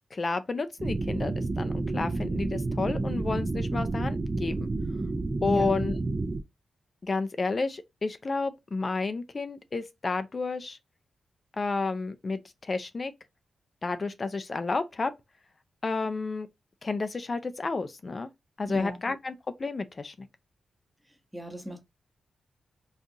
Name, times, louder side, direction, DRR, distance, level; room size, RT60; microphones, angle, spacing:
voice 1, 0.1-4.7 5.4-5.9 7.0-10.8 11.6-13.1 13.8-15.1 15.8-16.5 16.8-18.3 18.6-19.3 19.6-20.3, left 3 dB, 40° left, 0.4 m, -31 dB
sound 1, 0.8-6.4, right 2 dB, 35° right, 0.4 m, -30 dB
voice 2, 21.3-21.8, left 1 dB, 5° right, 0.9 m, -34 dB
3.8 x 2.4 x 2.6 m
cardioid pair, 80°, 0 cm